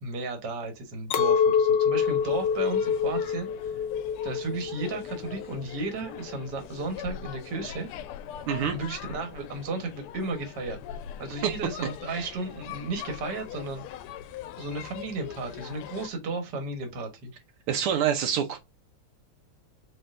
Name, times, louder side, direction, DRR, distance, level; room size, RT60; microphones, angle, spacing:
voice 1, 0.0-3.7 4.2-7.9 8.7-10.8 11.2-13.8 14.6-17.3, right 3 dB, 55° right, 1.7 m, -34 dB
Chink clink, 1.1-6.5, left 7 dB, 70° left, 1.0 m, -26 dB
sound 1, 2.0-16.1, left 10 dB, 85° left, 1.5 m, -42 dB
voice 2, 17.7-18.6, right 8 dB, 80° right, 1.7 m, -26 dB
4.3 x 4.3 x 2.5 m
omnidirectional pair, 2.4 m